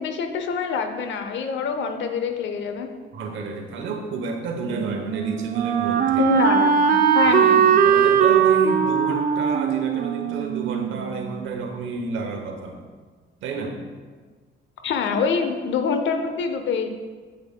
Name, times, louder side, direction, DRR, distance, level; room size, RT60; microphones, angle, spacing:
voice 1, 0.0-2.9 6.2-7.8 14.8-16.9, left 5 dB, 70° left, 7 dB, 0.7 m, -25 dB
voice 2, 3.1-6.3 7.2-7.4 7.8-12.8 13.4-13.8, right 4 dB, 80° right, 3 dB, 0.9 m, -30 dB
Wind instrument woodwind instrument, 4.6-11.5, right 8 dB, 45° right, 0.5 m, -20 dB
7.8 x 6.7 x 2.2 m, 1.5 s
cardioid pair, 90°, 20 cm